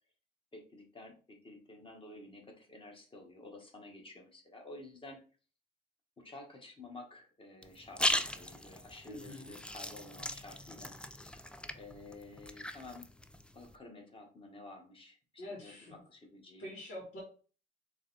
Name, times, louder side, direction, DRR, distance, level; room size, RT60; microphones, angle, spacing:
voice 1, 0.5-5.2 6.2-11.0 11.7-13.1 13.5-16.7, left 2 dB, 25° left, 2 dB, 1.6 m, -51 dB
sound 1, 7.6-13.7, left 1 dB, 5° left, 0.4 m, -38 dB
voice 2, 9.1-9.5 15.4-15.9 16.6-17.2, left 1 dB, 85° left, -2 dB, 2.1 m, -45 dB
4.0 x 3.1 x 4.2 m, 0.38 s
cardioid pair, 90°, 20 cm